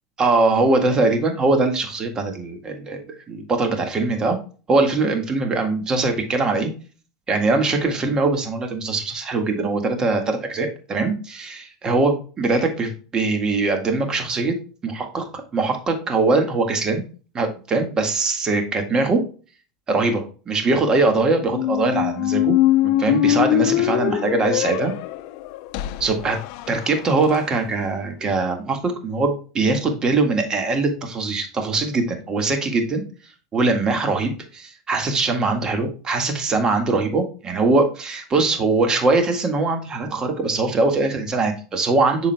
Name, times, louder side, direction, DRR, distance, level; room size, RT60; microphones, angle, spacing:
voice 1, 0.2-3.0 3.3-4.4 4.7-6.7 7.3-14.6 14.8-17.0 17.3-19.2 19.9-22.6 22.8-24.9 26.0-26.4 26.7-33.0 33.5-42.3, right 3 dB, 30° right, 5 dB, 1.7 m, -22 dB
Squeak, 21.4-27.4, left 13 dB, 65° left, 0.6 m, -22 dB
7.1 x 6.3 x 2.2 m, 0.37 s
hypercardioid pair, 100°, 3 cm